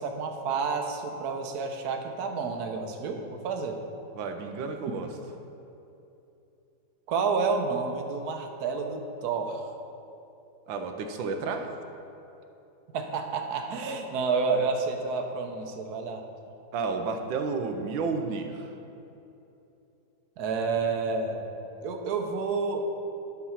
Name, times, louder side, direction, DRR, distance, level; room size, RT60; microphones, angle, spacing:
voice 1, 0.0-3.8 7.1-9.7 12.9-16.2 20.4-21.4 21.8-22.9, right 4 dB, 65° right, 4 dB, 1.2 m, -29 dB
voice 2, 4.1-5.1 10.7-11.7 16.7-18.7, right 4 dB, 90° right, 5 dB, 1.5 m, -31 dB
11.0 x 4.2 x 5.7 m, 2.9 s
omnidirectional pair, 2.0 m